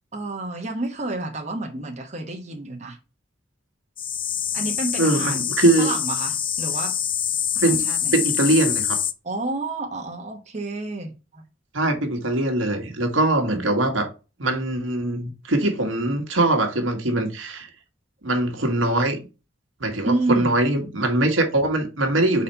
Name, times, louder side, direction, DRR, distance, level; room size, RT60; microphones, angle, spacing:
voice 1, 0.1-3.0 4.5-5.4 5.8-6.9 7.5-8.1 9.2-11.4 20.0-20.5, right 2 dB, 35° right, 1.0 m, -29 dB
sound 1, 4.0-9.1, left 9 dB, 25° left, 0.3 m, -25 dB
voice 2, 5.0-5.9 7.6-7.8 8.1-9.0 11.7-14.1 14.4-17.7 18.2-19.2 19.8-22.4, right 2 dB, 90° right, 1.4 m, -22 dB
4.3 x 4.1 x 5.4 m
head